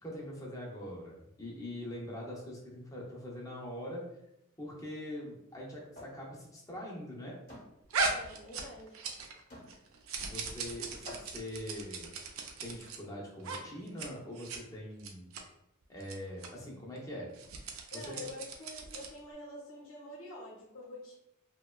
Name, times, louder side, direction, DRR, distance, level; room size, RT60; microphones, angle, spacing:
voice 1, 0.0-4.0 4.6-7.4 10.3-12.1 12.6-15.3 15.9-17.3 17.9-18.3, left 1 dB, 15° left, -3 dB, 0.5 m, -43 dB
sound 1, 5.9-6.2 6.6-6.8 7.5-7.7 8.6-8.7 9.5-9.8 10.6-10.7 11.0-11.5, equal, 45° left, 0.8 m, -49 dB
sound 2, 7.9-9.4 9.7-13.0 13.4-13.6 13.9-14.1 14.4-14.6 15.0-15.4 16.0-16.1 16.4-16.5 17.3-19.2, right 4 dB, 75° right, 0.4 m, -38 dB
voice 2, 8.1-8.9 17.9-21.1, left 2 dB, 85° left, -5 dB, 0.7 m, -47 dB
2.8 x 2.2 x 2.2 m, 0.82 s
head